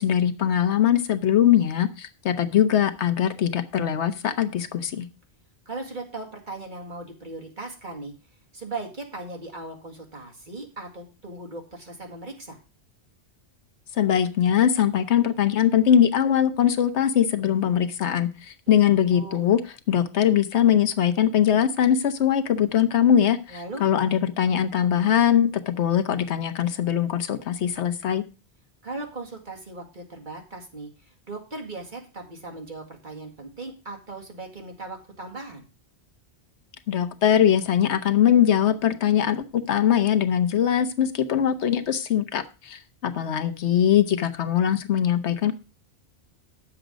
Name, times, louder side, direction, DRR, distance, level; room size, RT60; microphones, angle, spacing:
voice 1, 0.0-5.1 14.0-19.6 19.9-28.2 36.9-45.5, left 9 dB, 85° left, 9 dB, 1.1 m, -21 dB
voice 2, 5.7-8.1 8.5-12.6 18.8-19.5 23.5-23.9 28.8-35.7, right 2 dB, 45° right, 1 dB, 2.2 m, -38 dB
9.1 x 7.1 x 5.1 m, 0.32 s
omnidirectional pair, 1.1 m